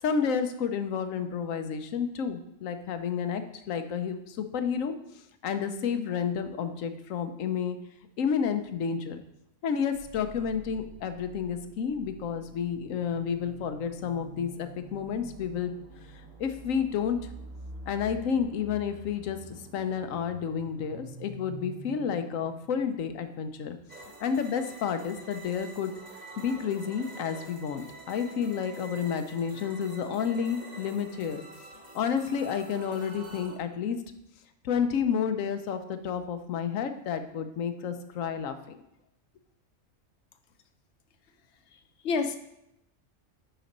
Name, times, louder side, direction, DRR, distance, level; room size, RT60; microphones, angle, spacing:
voice 1, 0.0-7.8 8.2-9.2 9.6-15.7 16.4-17.2 17.9-23.8 24.2-25.9 26.4-31.4 31.9-34.0 34.6-38.8, left 7 dB, 85° left, 8 dB, 1.1 m, -30 dB
sound 1, 9.9-23.7, right 2 dB, 80° right, 2.3 m, -47 dB
sound 2, 23.9-33.6, right 2 dB, 35° right, 1.3 m, -47 dB
voice 2, 41.7-42.4, left 4 dB, 60° left, 8 dB, 1.0 m, -30 dB
10.0 x 4.1 x 5.2 m, 0.82 s
omnidirectional pair, 1.3 m